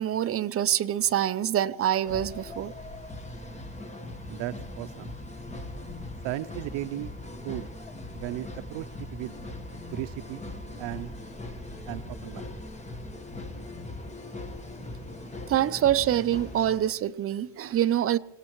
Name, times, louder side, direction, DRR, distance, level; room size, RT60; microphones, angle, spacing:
voice 1, 0.0-2.7 15.5-18.2, right 11 dB, 35° right, 0.5 m, -25 dB
sound 1, 2.1-16.8, left 2 dB, 15° left, 1.2 m, -40 dB
voice 2, 4.3-5.1 6.2-7.1 7.4-7.7 8.1-8.9 9.1-9.3 9.9-10.4 10.8-11.1 11.9-12.6, right 15 dB, 75° right, 0.6 m, -35 dB
25.0 x 18.0 x 3.0 m
cardioid pair, 155°, 45 cm